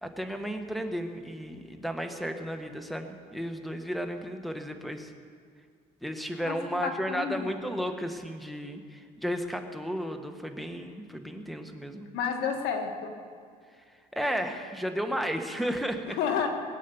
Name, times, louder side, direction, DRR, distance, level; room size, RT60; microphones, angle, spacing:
voice 1, 0.0-5.1 6.0-12.1 14.1-16.2, equal, ahead, 6 dB, 1.3 m, -33 dB
voice 2, 6.4-7.4 12.1-13.1 16.2-16.5, left 7 dB, 85° left, 4 dB, 1.9 m, -30 dB
20.5 x 8.5 x 7.0 m, 2.1 s
cardioid pair, 110°, 17 cm